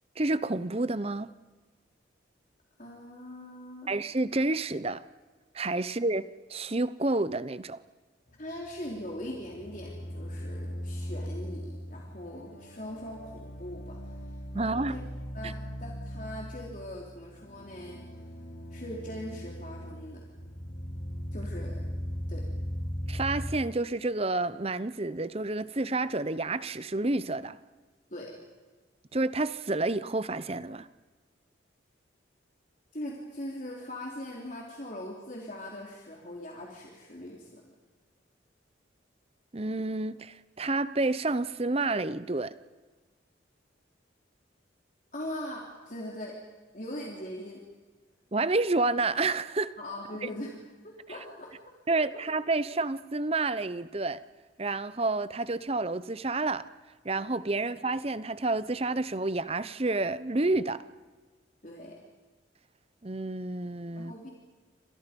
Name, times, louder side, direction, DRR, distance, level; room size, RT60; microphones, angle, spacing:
voice 1, 0.2-1.3 3.9-5.0 5.5-6.2 6.5-7.8 14.5-15.0 15.4-15.5 23.1-27.6 29.1-30.9 39.5-42.5 48.3-49.7 50.2-50.3 51.9-54.2 54.6-56.7 57.0-60.8 63.0-64.1, right 2 dB, 30° right, 15 dB, 0.8 m, -29 dB
voice 2, 2.8-3.9 8.4-14.2 14.5-15.1 15.3-18.0 18.7-20.2 21.3-21.8 22.3-22.4 28.1-28.3 32.9-37.7 45.1-46.4 46.7-47.7 49.8-50.5 50.8-51.6 61.6-62.0 63.9-64.3, left 1 dB, 40° left, -2 dB, 3.8 m, -41 dB
sound 1, 8.3-23.6, equal, 60° left, 2.7 m, -39 dB
29.0 x 27.0 x 5.4 m, 1.3 s
head